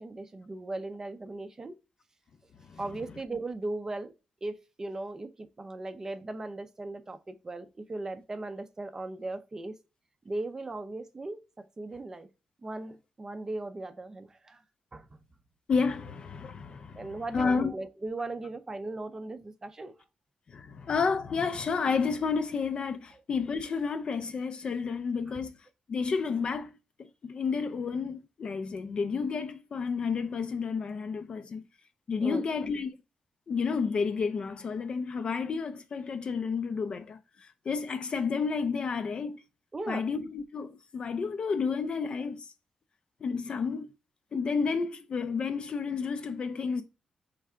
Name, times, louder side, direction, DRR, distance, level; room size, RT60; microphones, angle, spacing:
voice 1, 0.0-1.8 2.8-4.1 4.4-9.8 10.2-12.3 12.6-14.6 14.9-15.2 17.0-19.9 25.3-25.4 32.2-32.5 39.7-40.1, right 2 dB, 20° right, 0.4 m, -38 dB
voice 2, 15.7-17.7 20.5-25.6 25.9-31.7 32.1-32.9 33.5-39.4 39.9-42.5 43.2-43.9 44.3-46.8, left 5 dB, 40° left, 0.3 m, -31 dB
4.6 x 3.2 x 3.5 m
wide cardioid pair, 160°, 2 cm